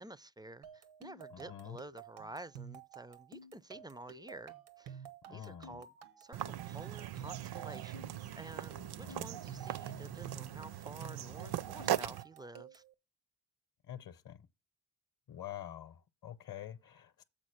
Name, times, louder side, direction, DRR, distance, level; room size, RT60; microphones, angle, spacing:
voice 1, 0.0-12.8, right 2 dB, 10° right, 0.3 m, -51 dB
sound 1, 0.6-12.9, right 6 dB, 90° right, 1.2 m, -51 dB
voice 2, 1.3-1.8 5.3-5.7 9.0-9.3 13.9-14.4 15.3-17.2, left 10 dB, 50° left, 0.8 m, -47 dB
sound 2, 6.3-12.2, right 11 dB, 60° right, 0.6 m, -39 dB
7.5 x 4.1 x 6.5 m
supercardioid pair, 60°, 44 cm